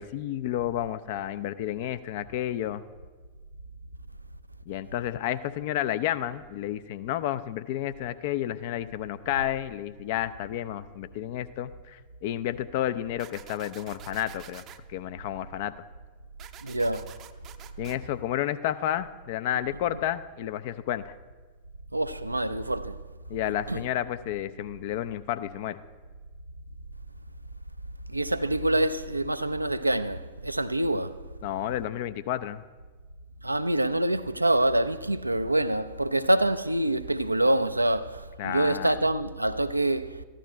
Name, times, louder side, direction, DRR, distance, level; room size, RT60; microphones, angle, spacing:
voice 1, 0.0-2.8 4.7-14.6 14.9-15.7 17.8-21.1 23.3-25.8 31.4-32.6 38.4-39.0, left 12 dB, 50° left, 0.5 m, -31 dB
sound 1, 13.2-14.8 16.4-18.0, right 10 dB, 35° right, 0.6 m, -48 dB
voice 2, 16.6-17.1 21.9-23.0 23.7-23.8 28.1-31.2 33.4-40.2, right 1 dB, 85° right, 0.4 m, -26 dB
14.0 x 11.5 x 4.4 m
figure-of-eight pair, 90°, 0 cm